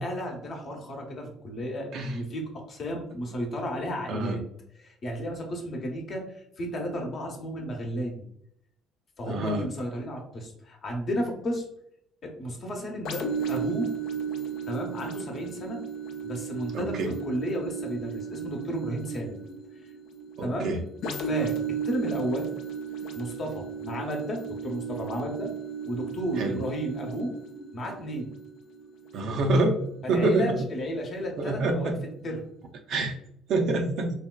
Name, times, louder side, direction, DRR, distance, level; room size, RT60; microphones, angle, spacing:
voice 1, 0.0-4.4 4.8-8.2 9.2-11.6 12.2-13.9 14.7-15.8 16.2-19.4 20.4-20.7 21.2-22.5 23.1-25.5 25.8-27.3 27.7-28.3 30.0-31.9 32.2-32.4, equal, 50° left, 1 dB, 0.8 m, -33 dB
voice 2, 9.3-9.6 16.7-17.1 20.4-20.8 26.4-26.6 29.1-29.8 30.1-30.6 31.4-32.0 32.9-33.2 33.5-34.1, right 2 dB, 60° right, 3 dB, 0.5 m, -26 dB
sound 1, 13.0-30.6 31.1-31.2, right 6 dB, 65° left, 0.4 m, -35 dB
3.2 x 2.2 x 2.2 m, 0.74 s
hypercardioid pair, 55°, 0 cm